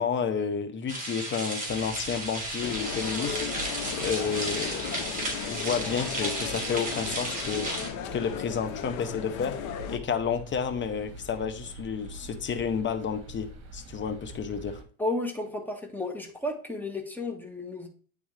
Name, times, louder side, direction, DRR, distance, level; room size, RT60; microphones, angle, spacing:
voice 1, 0.0-3.4 4.0-5.0 5.5-7.7 8.1-9.6 9.9-13.5 13.7-14.8, left 6 dB, 30° left, 0.9 m, -30 dB
sound 1, 0.9-7.9, right 1 dB, 20° right, 2.9 m, -34 dB
sound 2, 1.7-14.8, right 1 dB, 45° right, 1.4 m, -45 dB
sound 3, 2.6-10.0, left 8 dB, 55° left, 1.0 m, -36 dB
voice 2, 15.0-17.9, left 2 dB, 5° left, 1.4 m, -33 dB
9.9 x 3.5 x 3.3 m
supercardioid pair, 100°, 37 cm